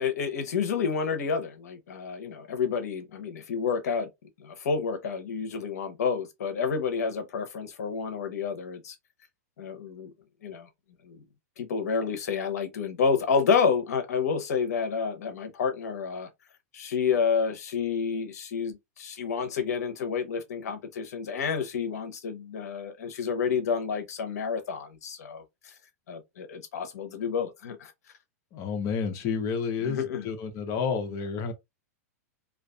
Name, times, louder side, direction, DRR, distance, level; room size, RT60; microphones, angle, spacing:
voice 1, 0.0-4.1 4.4-9.0 9.6-10.1 10.4-10.7 11.0-11.2 11.6-16.3 16.7-25.7 26.1-27.9 29.8-30.3, left 6 dB, 75° left, 0.8 m, -29 dB
voice 2, 28.5-31.5, left 6 dB, 40° left, 0.7 m, -30 dB
2.4 x 2.4 x 2.3 m
hypercardioid pair, 125°, 9 cm